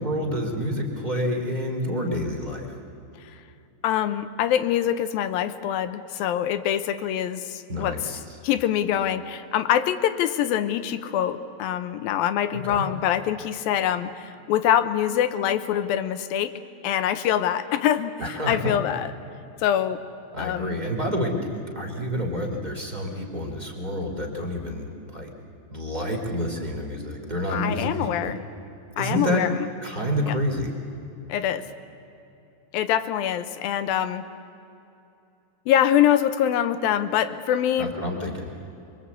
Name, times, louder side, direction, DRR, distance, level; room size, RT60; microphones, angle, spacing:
voice 1, 0.0-2.7 7.7-8.2 12.7-12.8 18.2-18.8 20.3-25.3 25.7-28.3 29.0-29.4 29.8-30.7 37.8-38.5, equal, 10° right, 1 dB, 2.7 m, -28 dB
voice 2, 3.8-8.1 8.4-16.5 16.8-19.1 19.6-20.0 20.4-20.8 27.5-28.4 29.0-29.7 30.3-30.4 31.3-31.7 32.7-34.2 35.7-37.9, left 10 dB, 75° left, 11 dB, 2.4 m, -24 dB
27.0 x 23.5 x 8.3 m, 2.8 s
omnidirectional pair, 4.7 m